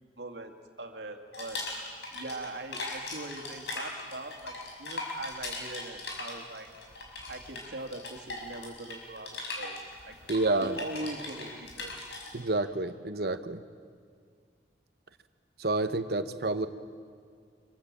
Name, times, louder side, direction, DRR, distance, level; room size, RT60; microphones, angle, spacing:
voice 1, 0.2-1.6 2.1-6.7 7.3-10.2 10.6-12.0, right 2 dB, 80° right, 4 dB, 2.3 m, -41 dB
sound 1, 1.3-2.5 2.7-12.3, left 2 dB, 80° left, 6.0 m, -39 dB
voice 2, 10.3-10.8 12.3-13.6 15.6-16.7, right 2 dB, 65° right, 10 dB, 1.1 m, -29 dB
25.5 x 24.0 x 7.5 m, 2.1 s
head